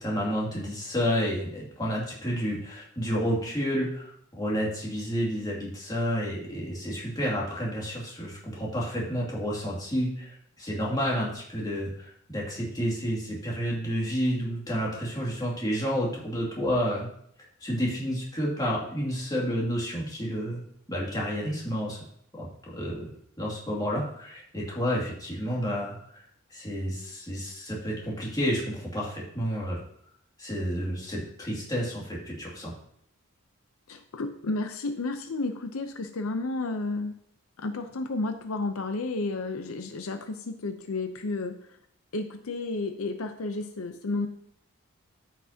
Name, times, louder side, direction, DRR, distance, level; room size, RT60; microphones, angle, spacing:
voice 1, 0.0-17.1 17.6-20.6 20.9-22.0 22.4-23.0 23.4-26.2 26.5-29.8 30.4-32.7, equal, 15° left, -5 dB, 2.3 m, -30 dB
voice 2, 33.9-37.2 37.6-41.5 42.1-44.3, left 3 dB, 75° left, 7 dB, 0.6 m, -32 dB
13.5 x 5.9 x 2.8 m, 0.69 s
head